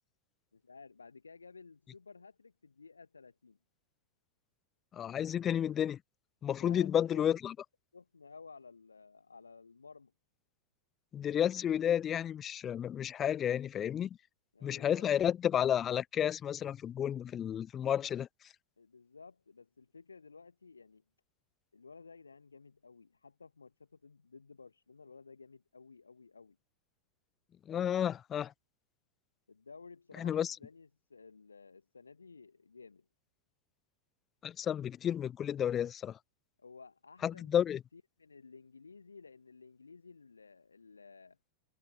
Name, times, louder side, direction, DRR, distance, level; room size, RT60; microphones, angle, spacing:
voice 1, 0.5-3.6 6.4-7.2 7.9-10.1 14.5-15.2 18.8-21.0 21.7-26.6 29.5-33.1 36.6-37.6 37.9-41.4, left 4 dB, 75° left, 1.8 m, -55 dB
voice 2, 4.9-6.0 6.4-7.5 11.1-14.1 14.6-18.3 27.7-28.5 30.2-30.5 34.4-36.1 37.2-37.8, left 9 dB, 25° left, 0.6 m, -31 dB
figure-of-eight pair, 90°, 0 cm